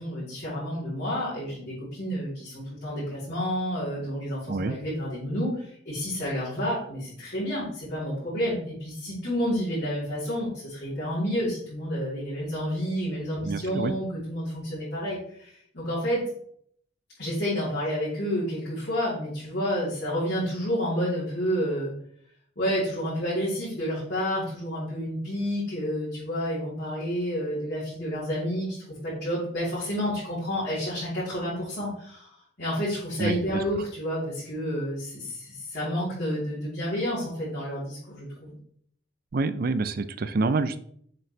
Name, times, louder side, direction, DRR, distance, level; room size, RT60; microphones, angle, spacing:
voice 1, 0.0-16.2 17.2-21.9 22.6-28.8 29.0-32.3 32.6-38.5, equal, 50° left, -11 dB, 3.1 m, -30 dB
voice 2, 4.5-4.8 13.4-13.9 33.2-33.6 39.3-40.8, right 3 dB, 45° right, 13 dB, 0.4 m, -27 dB
7.4 x 5.5 x 3.2 m, 0.65 s
head